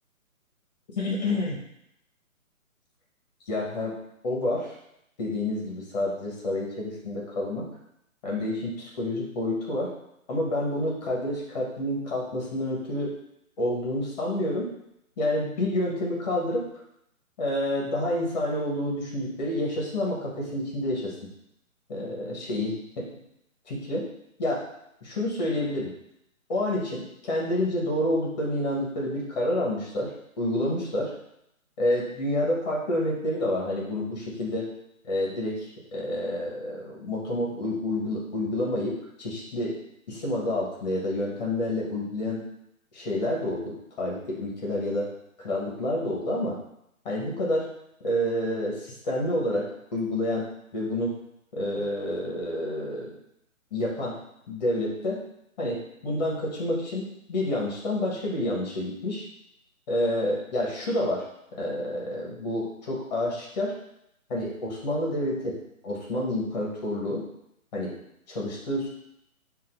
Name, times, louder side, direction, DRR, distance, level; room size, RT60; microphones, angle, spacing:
voice 1, 1.0-1.6 3.5-4.0 4.2-4.7 5.2-7.6 8.2-9.9 10.3-13.1 13.6-14.7 15.2-16.6 17.4-21.1 21.9-23.1 23.7-24.1 24.4-24.6 25.0-25.9 26.5-31.1 31.8-34.7 35.0-39.8 40.1-42.4 42.9-45.1 45.4-46.6 47.0-47.7 48.0-50.5 50.7-51.1 51.5-53.1 53.7-54.2 54.5-55.2 55.6-59.2 59.9-61.2 61.5-63.7 64.3-65.5 65.8-67.2 67.7-67.9 68.3-68.9, left 1 dB, 30° left, -2 dB, 1.3 m, -28 dB
7.1 x 2.7 x 2.6 m, 0.78 s
figure-of-eight pair, 145°, 42 cm